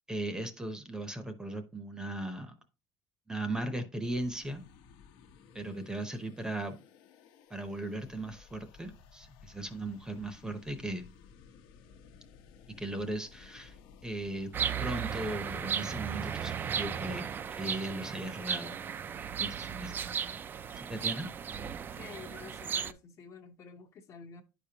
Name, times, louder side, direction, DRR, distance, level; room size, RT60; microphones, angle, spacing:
voice 1, 0.1-2.5 3.3-4.6 5.5-6.8 7.5-11.1 12.8-13.8 14.0-14.5 14.8-18.8 19.4-19.9 20.7-21.3, right 1 dB, 10° right, 0.7 m, -37 dB
sound 1, 4.0-17.1, left 6 dB, 75° left, 1.0 m, -56 dB
sound 2, 14.5-22.9, right 7 dB, 25° right, 0.3 m, -35 dB
voice 2, 21.9-24.4, left 6 dB, 40° left, 0.8 m, -49 dB
10.0 x 5.1 x 2.8 m
cardioid pair, 155°, 8 cm